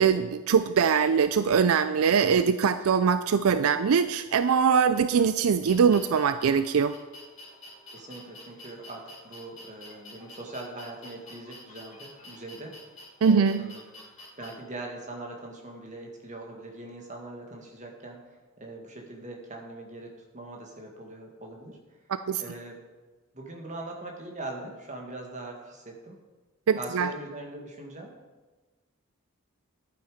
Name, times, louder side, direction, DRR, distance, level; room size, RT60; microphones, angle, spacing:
voice 1, 0.0-6.9 13.2-13.7 22.1-22.4 26.7-27.1, right 6 dB, 75° right, 12 dB, 0.4 m, -22 dB
sound 1, 4.4-14.5, left 1 dB, 35° left, 4.1 m, -49 dB
voice 2, 7.9-12.7 13.2-13.8 14.4-21.8 22.4-22.8 23.3-26.2 26.8-28.1, right 2 dB, 35° right, 0 dB, 2.0 m, -41 dB
11.5 x 9.0 x 5.1 m, 1.2 s
head